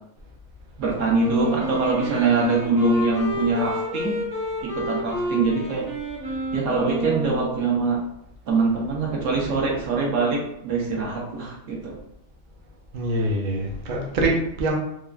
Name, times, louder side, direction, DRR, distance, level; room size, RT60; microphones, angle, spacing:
voice 1, 0.8-4.1 4.6-5.9 6.5-8.0 8.5-11.9, right 3 dB, 70° right, -3 dB, 1.1 m, -23 dB
Wind instrument woodwind instrument, 1.2-7.8, right 1 dB, 5° right, 0.5 m, -29 dB
voice 2, 12.9-14.7, right 1 dB, 55° right, 0 dB, 0.5 m, -24 dB
3.0 x 2.4 x 2.3 m, 0.78 s
omnidirectional pair, 1.4 m